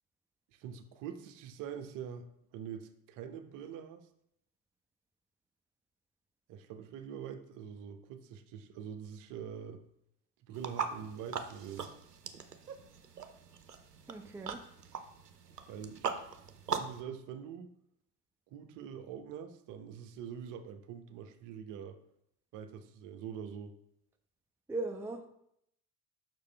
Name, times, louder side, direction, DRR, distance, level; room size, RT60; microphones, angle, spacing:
voice 1, 0.5-4.1 6.5-9.8 10.4-11.9 15.7-16.3 16.7-17.7 18.5-22.0 22.5-23.8, right 8 dB, 45° right, 8 dB, 0.9 m, -44 dB
sound 1, 10.5-17.0, right 6 dB, 85° right, 0.7 m, -41 dB
voice 2, 14.1-14.6 24.7-25.3, right 2 dB, 5° right, 4 dB, 0.6 m, -38 dB
6.6 x 6.0 x 3.3 m, 0.73 s
figure-of-eight pair, 65°, 46 cm